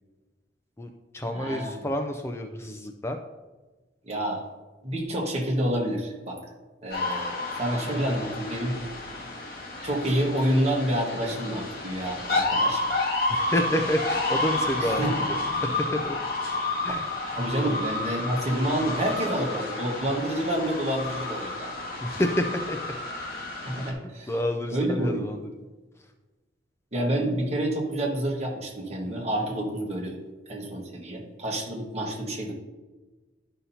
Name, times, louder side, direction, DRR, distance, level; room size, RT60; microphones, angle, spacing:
voice 1, 0.8-3.2 13.3-16.2 16.8-17.1 22.0-22.9 24.3-25.7, left 1 dB, 15° left, 5 dB, 0.4 m, -29 dB
voice 2, 1.3-1.7 4.0-4.5 4.8-6.4 6.8-8.8 9.8-12.9 14.8-15.1 17.4-21.7 23.6-24.3 24.7-25.2 26.9-30.2 30.5-32.5, right 1 dB, 35° right, -1 dB, 1.5 m, -28 dB
sound 1, 6.9-23.9, left 2 dB, 60° left, 1.7 m, -30 dB
11.0 x 5.6 x 2.8 m, 1.2 s
head